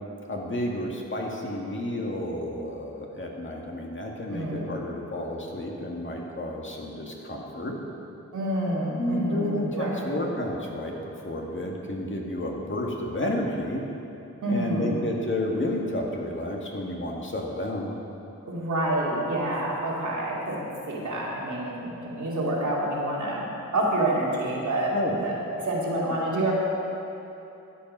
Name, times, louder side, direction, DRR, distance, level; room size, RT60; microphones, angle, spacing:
voice 1, 0.3-7.8 9.0-13.8 14.5-17.9 24.9-25.1, left 1 dB, 40° left, -1 dB, 1.9 m, -31 dB
voice 2, 4.3-4.7 8.3-10.1 14.4-15.0 18.5-24.9 25.2-26.5, right 1 dB, 85° right, -5 dB, 2.5 m, -28 dB
13.0 x 7.9 x 5.5 m, 3.0 s
cardioid pair, 60°, 29 cm